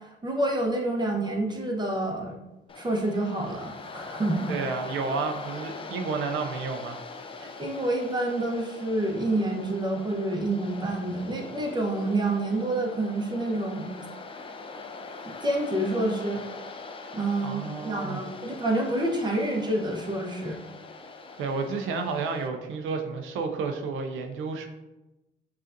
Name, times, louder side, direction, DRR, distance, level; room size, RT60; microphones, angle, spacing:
voice 1, 0.2-2.4 2.8-4.6 7.4-13.9 15.4-16.4 17.1-20.6, right 1 dB, 20° right, 1 dB, 0.8 m, -28 dB
Waves surf, 2.7-22.5, left 3 dB, 25° left, 0.4 m, -42 dB
voice 2, 4.5-7.0 17.4-18.2 21.4-24.7, right 4 dB, 85° right, 5 dB, 0.5 m, -31 dB
6.3 x 2.5 x 2.5 m, 1.0 s
cardioid pair, 90°, 20 cm